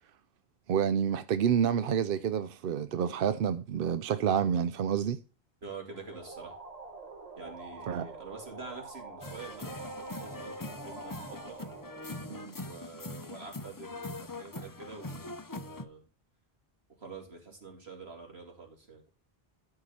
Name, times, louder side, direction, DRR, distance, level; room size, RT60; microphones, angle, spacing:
voice 1, 0.7-5.2 7.9-8.1 12.3-12.5, right 8 dB, 65° right, 0.7 m, -28 dB
voice 2, 5.6-6.6 7.4-11.6 12.6-16.0 17.0-19.0, right 4 dB, 80° right, 3.1 m, -47 dB
sound 1, 5.9-13.3, right 3 dB, 40° right, 1.8 m, -47 dB
sound 2, 9.2-15.8, left 2 dB, 25° left, 0.6 m, -42 dB
12.5 x 4.8 x 4.2 m
omnidirectional pair, 1.0 m